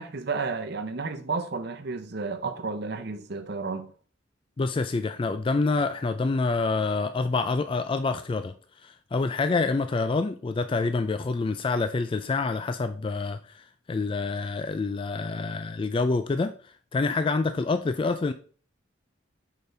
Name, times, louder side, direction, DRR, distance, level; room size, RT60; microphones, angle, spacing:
voice 1, 0.0-3.9, right 4 dB, 55° right, 0.8 m, -32 dB
voice 2, 4.6-8.5 8.8-18.3, left 3 dB, 25° left, 0.3 m, -27 dB
6.7 x 5.1 x 3.3 m
head